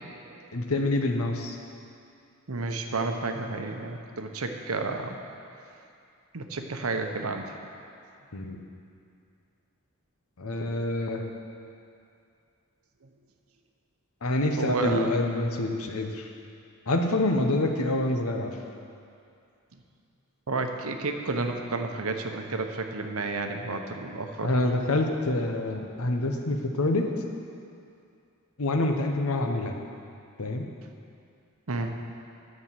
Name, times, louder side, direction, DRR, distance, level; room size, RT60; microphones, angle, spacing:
voice 1, 0.5-1.6 8.3-8.6 10.4-11.2 14.2-16.3 16.9-18.5 24.4-27.0 28.6-29.8 30.4-30.6, left 2 dB, 80° left, 3 dB, 1.0 m, -26 dB
voice 2, 2.5-5.2 6.3-7.5 14.6-15.1 20.5-24.5 31.7-31.9, right 3 dB, 75° right, 5 dB, 0.9 m, -31 dB
9.8 x 6.5 x 7.4 m, 2.5 s
head